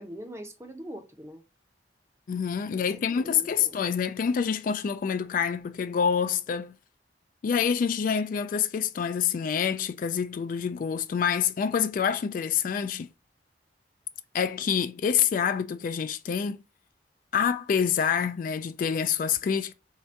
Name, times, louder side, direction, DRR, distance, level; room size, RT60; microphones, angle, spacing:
voice 1, 0.0-1.4 2.8-3.8, equal, 15° right, 0.7 m, -43 dB
voice 2, 2.3-6.7 7.4-13.1 14.3-16.6 17.3-19.7, left 7 dB, 50° left, 0.3 m, -27 dB
3.4 x 2.8 x 4.4 m
head